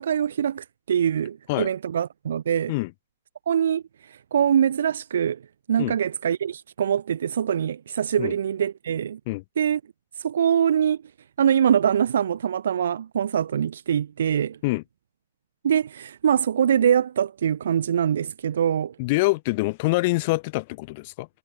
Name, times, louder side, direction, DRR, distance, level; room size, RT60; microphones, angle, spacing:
voice 1, 0.0-2.7 3.5-5.4 5.7-9.2 9.6-9.8 10.2-11.0 11.4-14.6 15.6-18.9, right 8 dB, 60° right, 2.0 m, -23 dB
voice 2, 19.0-21.3, left 23 dB, 30° left, 0.8 m, -25 dB
hypercardioid pair, 175°, 0 cm